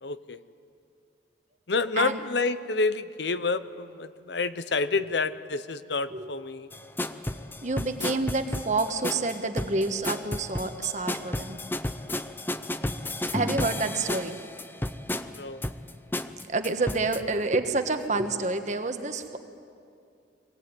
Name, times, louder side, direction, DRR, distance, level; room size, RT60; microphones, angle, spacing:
voice 1, 0.0-0.4 1.7-6.7 15.3-15.6, left 3 dB, 75° left, 13 dB, 0.8 m, -29 dB
sound 1, 6.7-17.2, left 1 dB, 10° left, 0.6 m, -33 dB
voice 2, 7.6-11.6 13.3-14.4 16.5-19.4, right 3 dB, 40° right, 7 dB, 1.4 m, -28 dB
23.5 x 17.5 x 9.7 m, 2.4 s
head